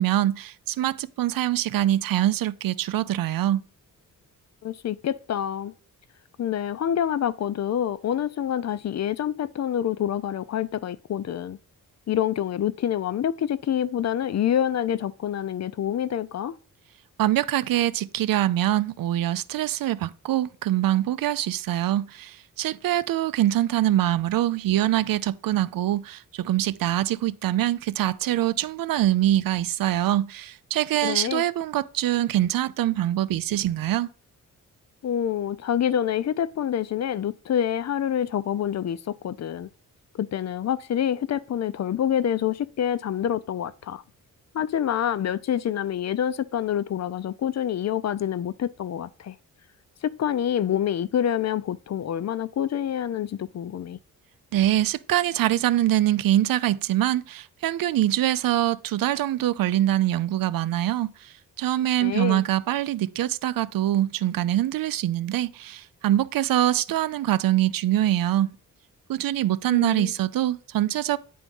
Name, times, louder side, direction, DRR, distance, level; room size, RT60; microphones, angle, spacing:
voice 1, 0.0-3.6 17.2-34.1 54.5-68.5 69.1-71.2, right 13 dB, 80° right, 0.6 m, -24 dB
voice 2, 4.6-5.7 6.4-11.6 12.1-16.6 31.0-31.4 35.0-39.7 40.1-44.0 44.5-49.4 50.0-54.0 62.0-62.4 69.7-70.1, left 10 dB, 50° left, 0.6 m, -27 dB
9.5 x 3.6 x 5.3 m
wide cardioid pair, 120°, 34 cm